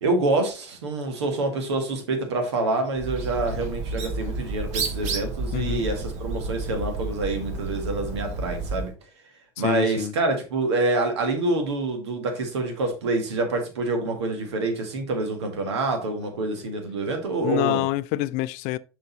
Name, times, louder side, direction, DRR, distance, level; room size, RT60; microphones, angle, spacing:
voice 1, 0.0-8.9 9.6-17.8, right 2 dB, 75° right, 1.8 m, -26 dB
Bird, 3.0-8.9, right 3 dB, 55° right, 1.7 m, -31 dB
voice 2, 5.5-5.8 9.6-10.1 17.4-18.8, left 16 dB, 55° left, 0.4 m, -26 dB
6.7 x 5.3 x 4.0 m
figure-of-eight pair, 65°, 14 cm